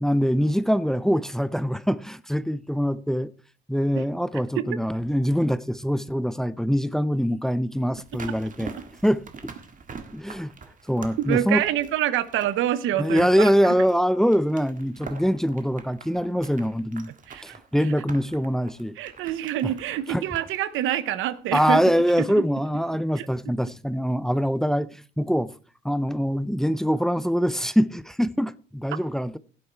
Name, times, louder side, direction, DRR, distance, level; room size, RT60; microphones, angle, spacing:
voice 1, 0.0-3.3 3.7-8.7 9.0-9.5 10.1-10.5 10.9-11.6 13.0-17.1 17.4-19.0 20.1-20.2 21.5-25.6 25.8-29.4, equal, ahead, 0.6 m, -23 dB
sound 1, 7.9-22.0 22.2-22.3, right 5 dB, 40° right, 1.7 m, -44 dB
voice 2, 11.3-13.8 17.3-17.6 19.0-21.8 22.2-22.4 23.2-23.3, right 12 dB, 90° right, 0.9 m, -26 dB
16.5 x 7.9 x 4.5 m
cardioid pair, 90°, 20 cm